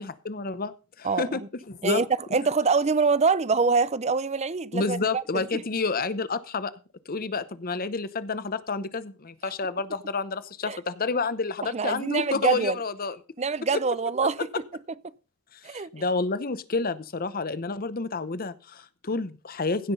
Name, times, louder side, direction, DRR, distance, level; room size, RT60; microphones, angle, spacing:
voice 1, 0.0-1.4 1.7-2.0 4.7-6.7 7.1-13.2 13.7-13.8 15.7-19.9, left 4 dB, 40° left, 0.9 m, -29 dB
voice 2, 1.0-1.5 1.8-2.1 2.3-5.6 10.6-10.8 11.6-12.8 13.4-14.5 15.6-15.9, right 4 dB, 30° right, 0.5 m, -25 dB
16.0 x 6.0 x 5.4 m
head